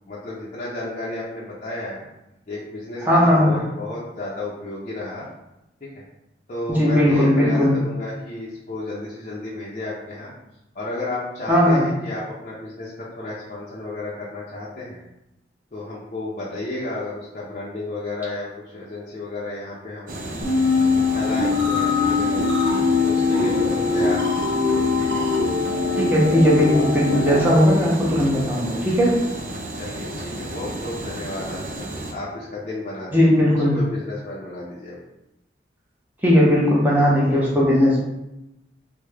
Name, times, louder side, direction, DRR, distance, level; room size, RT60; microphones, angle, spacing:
voice 1, 0.1-2.0 2.5-5.2 6.5-10.3 10.7-15.0 15.7-18.5 18.7-20.4 21.1-22.5 23.0-24.4 25.0-25.2 29.8-35.0, left 2 dB, 40° left, -7 dB, 0.5 m, -32 dB
voice 2, 3.0-3.6 6.7-7.8 11.5-11.9 26.0-29.1 33.1-33.8 36.2-38.0, equal, 10° right, -5 dB, 0.7 m, -17 dB
sound 1, 20.1-32.1, right 1 dB, 50° right, 0.4 m, -33 dB
sound 2, 20.4-27.4, left 4 dB, 85° right, 0.8 m, -21 dB
3.5 x 2.1 x 3.3 m, 0.91 s
head